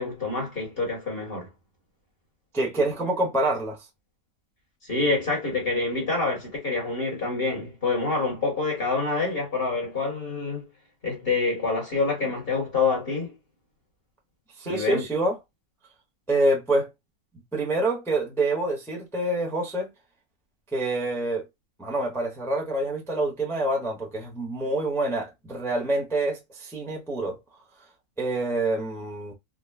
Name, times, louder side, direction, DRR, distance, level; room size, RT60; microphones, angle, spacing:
voice 1, 0.0-1.5 4.8-10.7 11.0-13.3 14.6-15.0, left 3 dB, 40° left, 1.6 m, -27 dB
voice 2, 2.5-3.8 14.6-15.3 16.3-16.9 17.5-19.9 20.7-21.4 21.8-27.4 28.2-29.3, right 2 dB, 5° left, 0.5 m, -26 dB
3.7 x 2.3 x 2.2 m
omnidirectional pair, 1.6 m